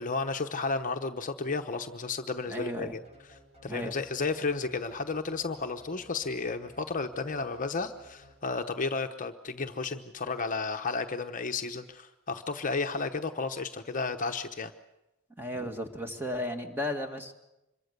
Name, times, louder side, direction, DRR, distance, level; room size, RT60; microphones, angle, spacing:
voice 1, 0.0-3.0 3.6-14.7, left 4 dB, 40° left, 6 dB, 1.0 m, -33 dB
voice 2, 2.5-2.9 3.7-3.9 15.4-17.3, left 1 dB, 10° right, 5 dB, 2.2 m, -34 dB
sound 1, 3.0-8.8, equal, 30° right, 7.4 m, -57 dB
26.0 x 23.0 x 6.7 m, 0.94 s
head